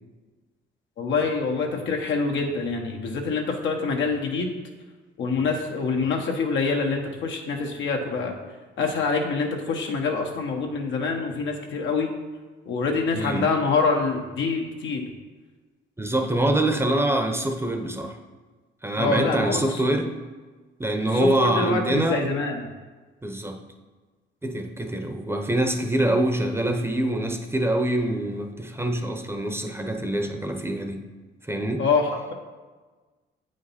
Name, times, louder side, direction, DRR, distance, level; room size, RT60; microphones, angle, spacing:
voice 1, 1.0-4.5 5.2-8.3 8.8-12.1 12.6-15.1 19.0-19.8 21.1-22.6 31.8-32.3, left 4 dB, 70° left, 2 dB, 1.2 m, -25 dB
voice 2, 13.1-13.5 16.0-18.2 18.8-20.1 20.8-22.2 23.2-23.6 24.4-31.0 31.5-31.8, right 1 dB, 10° right, 4 dB, 0.8 m, -25 dB
8.0 x 5.1 x 4.2 m, 1.3 s
cardioid pair, 90°, 20 cm